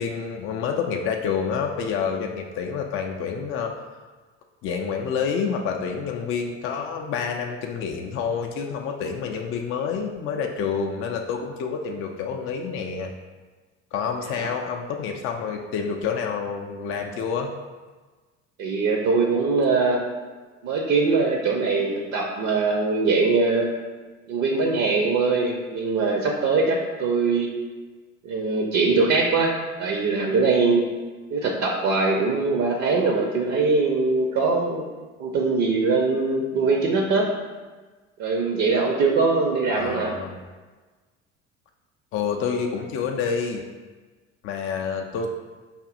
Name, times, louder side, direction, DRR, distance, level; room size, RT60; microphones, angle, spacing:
voice 1, 0.0-3.7 4.6-13.1 13.9-17.5 39.7-40.4 42.1-43.6 44.4-45.3, left 6 dB, 35° left, 2 dB, 0.4 m, -28 dB
voice 2, 18.6-20.0 20.6-23.7 24.3-27.5 28.2-29.5 29.8-30.8 31.3-34.8 35.2-37.3 38.2-40.1, right 4 dB, 45° right, 0 dB, 0.6 m, -22 dB
4.9 x 2.6 x 2.4 m, 1.3 s
figure-of-eight pair, 60°, 37 cm